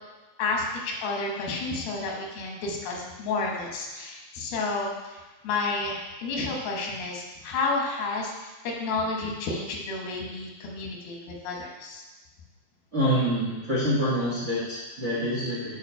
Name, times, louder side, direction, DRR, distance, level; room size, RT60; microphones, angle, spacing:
voice 1, 0.4-12.0, left 3 dB, 85° left, -1 dB, 3.3 m, -31 dB
voice 2, 12.9-15.8, equal, 55° right, -6 dB, 0.7 m, -26 dB
8.1 x 4.9 x 5.7 m, 1.2 s
omnidirectional pair, 4.2 m